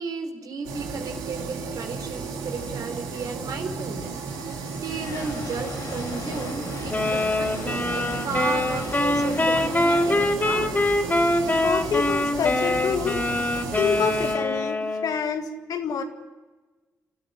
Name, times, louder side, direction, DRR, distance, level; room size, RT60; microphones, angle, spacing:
voice 1, 0.0-4.1 4.8-10.8, right 4 dB, 65° right, 5 dB, 3.9 m, -33 dB
sound 1, 0.6-14.4, right 5 dB, 85° right, 2.4 m, -34 dB
sound 2, 3.8-12.1, left 5 dB, 85° left, 3.1 m, -39 dB
sound 3, 6.9-15.3, left 1 dB, 25° left, 3.9 m, -24 dB
voice 2, 11.6-13.2 13.8-16.0, left 6 dB, 65° left, 6 dB, 2.1 m, -27 dB
27.5 x 13.5 x 9.9 m, 1.3 s
hypercardioid pair, 50°, 7 cm